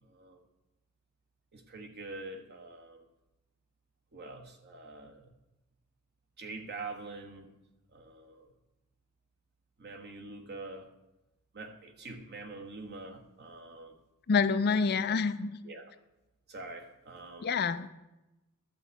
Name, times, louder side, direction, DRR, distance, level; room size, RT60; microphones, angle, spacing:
voice 1, 0.0-0.4 1.5-3.0 4.1-5.3 6.4-7.5 7.9-8.5 9.8-10.8 11.5-13.9 15.6-15.9 16.5-17.5, right 3 dB, 50° right, 4 dB, 1.5 m, -45 dB
voice 2, 14.3-15.5 17.4-17.9, left 5 dB, 45° left, 11 dB, 0.5 m, -27 dB
12.0 x 4.6 x 8.3 m, 0.96 s
head